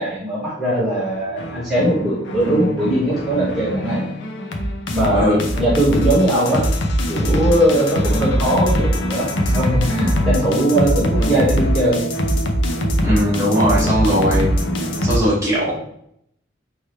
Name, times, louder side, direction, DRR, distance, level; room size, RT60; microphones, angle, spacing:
voice 1, 0.0-4.0 4.9-6.6 7.1-12.0, right 1 dB, ahead, -12 dB, 1.4 m, -20 dB
sound 1, 1.1-15.2, equal, 70° left, 0.7 m, -22 dB
voice 2, 13.0-14.6 15.0-15.8, equal, 15° right, -8 dB, 1.8 m, -18 dB
4.7 x 3.1 x 3.2 m, 0.72 s
head